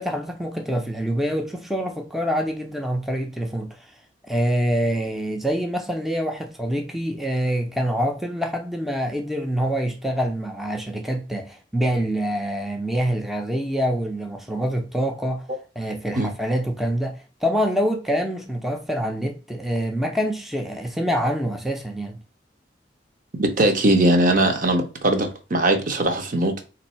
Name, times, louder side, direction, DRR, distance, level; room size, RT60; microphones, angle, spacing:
voice 1, 0.0-3.8 4.3-15.5 15.8-22.2, equal, ahead, 0.5 m, -25 dB
voice 2, 23.4-26.6, right 1 dB, 50° right, 0.8 m, -20 dB
3.6 x 2.6 x 4.2 m
head